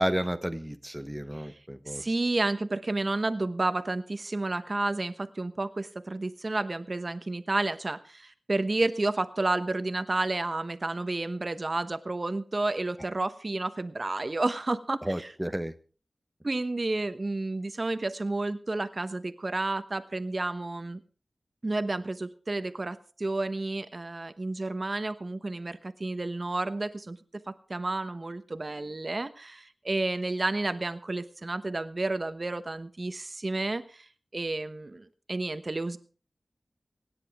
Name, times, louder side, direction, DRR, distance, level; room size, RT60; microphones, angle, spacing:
voice 1, 0.0-2.0 15.0-15.7, equal, 10° right, 8 dB, 1.0 m, -31 dB
voice 2, 1.9-15.3 16.4-21.0 21.6-34.1 34.3-36.0, right 2 dB, 40° right, 11 dB, 1.1 m, -31 dB
25.5 x 10.0 x 3.6 m, 0.39 s
wide cardioid pair, 80°, 0 cm